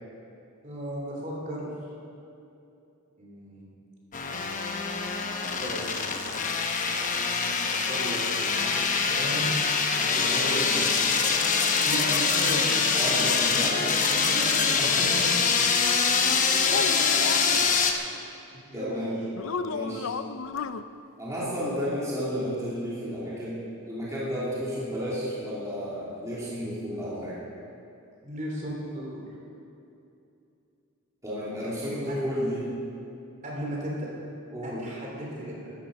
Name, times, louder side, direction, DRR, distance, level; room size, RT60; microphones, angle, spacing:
voice 1, 0.6-1.7 3.2-3.6 5.6-5.9 7.1-7.6 7.8-8.6 9.1-9.5 11.8-14.9 15.2-15.3 16.6-17.8 18.7-19.0 28.2-29.2 32.1-32.2 33.4-34.1 34.6-35.7, equal, 35° right, -3 dB, 3.3 m, -36 dB
sound 1, 4.1-17.9, left 5 dB, 35° left, 0.9 m, -24 dB
voice 2, 10.0-11.0 12.9-13.7 14.8-15.3 16.1-16.4 18.5-19.2 19.6-20.1 21.2-27.4 31.2-32.7 34.5-34.9, equal, 15° right, -9 dB, 2.9 m, -32 dB
sound 2, 16.3-17.6 19.4-20.8, left 5 dB, 70° left, 0.5 m, -33 dB
15.5 x 13.5 x 5.3 m, 2.7 s
head